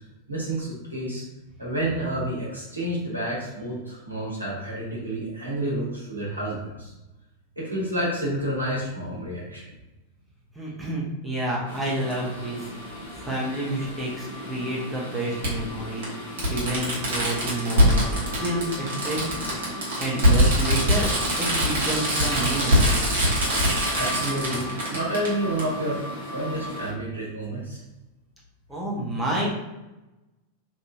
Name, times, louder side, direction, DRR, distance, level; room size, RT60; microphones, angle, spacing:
voice 1, 0.3-1.2 1.6-6.9 7.6-9.6 23.6-26.0 26.3-27.8, right 1 dB, 85° right, -5 dB, 1.0 m, -29 dB
voice 2, 10.5-19.6 20.0-21.1 21.4-23.1 28.7-29.5, right 1 dB, 5° right, -6 dB, 0.8 m, -30 dB
sound 1, 11.7-26.9, equal, 65° left, 0.8 m, -36 dB
Fireworks, 12.1-12.2 13.7-13.8 15.4-15.5 16.0-16.1 16.4-25.3 25.6-25.7, equal, 60° right, 1.0 m, -22 dB
3.0 x 2.5 x 2.4 m, 1.0 s
figure-of-eight pair, 90°, 0 cm